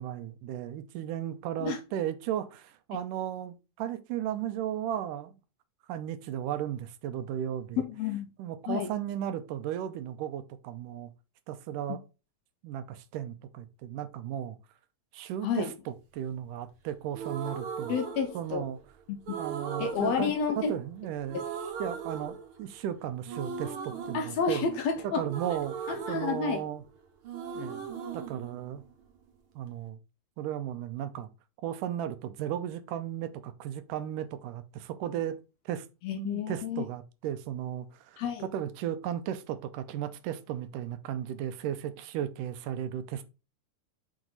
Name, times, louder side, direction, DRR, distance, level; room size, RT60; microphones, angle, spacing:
voice 1, 0.0-5.3 5.9-7.8 8.4-11.1 11.5-12.0 12.6-14.6 15.1-18.0 18.3-18.8 19.4-21.4 21.8-24.7 25.0-26.8 27.6-27.8 28.1-28.8 29.6-30.0 30.4-31.3 31.6-35.4 35.7-35.9 36.1-43.2, right 10 dB, 80° right, 2.2 m, -35 dB
voice 2, 7.8-8.3 8.7-8.9 15.4-15.7 17.9-18.6 19.1-19.4 19.8-20.7 24.1-25.2 25.9-26.6 36.0-36.8 38.2-38.4, left 6 dB, 70° left, 1.7 m, -30 dB
sound 1, 17.1-18.8 19.3-21.0 21.3-22.9 23.3-27.0 27.2-29.3, right 6 dB, 60° right, 1.5 m, -39 dB
6.3 x 4.9 x 4.0 m
omnidirectional pair, 3.9 m